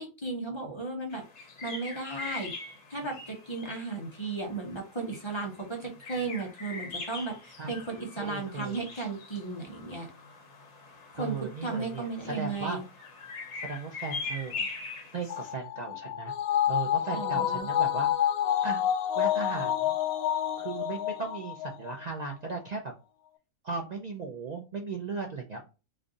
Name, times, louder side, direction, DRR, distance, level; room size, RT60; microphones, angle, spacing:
voice 1, 0.0-2.5 2.9-10.1 11.1-12.8 17.1-17.7, right 3 dB, 25° left, 1 dB, 0.7 m, -35 dB
sound 1, 1.1-15.5, left 4 dB, 55° left, 1.1 m, -42 dB
voice 2, 8.2-8.9 11.1-12.8 13.6-14.7 15.1-16.3 16.7-18.3 18.6-18.8 19.2-20.0 20.6-22.9 23.6-25.6, right 4 dB, 85° right, 1 dB, 0.3 m, -37 dB
sound 2, 15.3-22.0 22.3-22.4, left 10 dB, 85° left, 1.0 m, -28 dB
3.3 x 2.5 x 3.7 m, 0.31 s
omnidirectional pair, 1.5 m